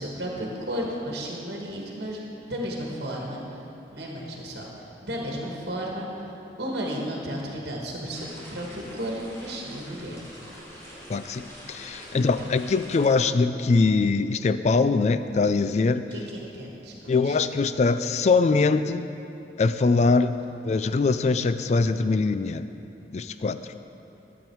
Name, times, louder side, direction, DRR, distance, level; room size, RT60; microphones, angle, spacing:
voice 1, 0.0-2.2 2.4-3.4 3.9-4.6 5.0-6.1 6.6-10.2 16.1-17.4, equal, 65° right, -1 dB, 1.4 m, -33 dB
sound 1, 8.1-13.1, equal, 15° left, 1.8 m, -45 dB
voice 2, 11.1-16.1 17.1-19.1 19.6-20.3 20.6-22.7 23.1-23.6, left 4 dB, 40° left, 12 dB, 0.3 m, -22 dB
12.0 x 7.2 x 4.6 m, 2.9 s
head